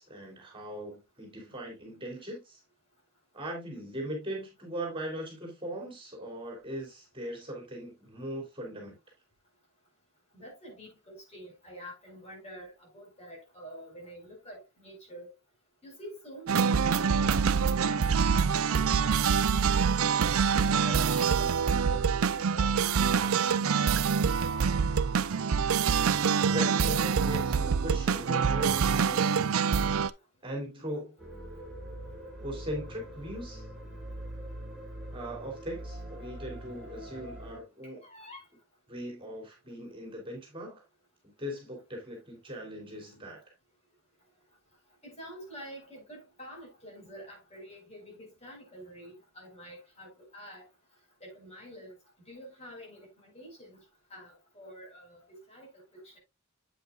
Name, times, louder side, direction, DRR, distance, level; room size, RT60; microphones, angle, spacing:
voice 1, 0.0-2.6 3.3-8.9 26.4-29.3 30.4-31.1 32.4-33.6 35.1-38.0 38.9-40.8 41.4-43.4, equal, 25° right, 3.2 m, -39 dB
voice 2, 10.3-15.3 15.8-20.1 20.6-24.0 38.0-38.5 45.0-50.7 51.2-51.9 52.3-53.8 54.1-56.2, equal, 30° left, 5.2 m, -48 dB
sound 1, 16.5-30.1, right 6 dB, 80° right, 0.5 m, -25 dB
sound 2, 31.2-37.6, right 1 dB, ahead, 4.6 m, -43 dB
8.7 x 8.0 x 2.4 m
head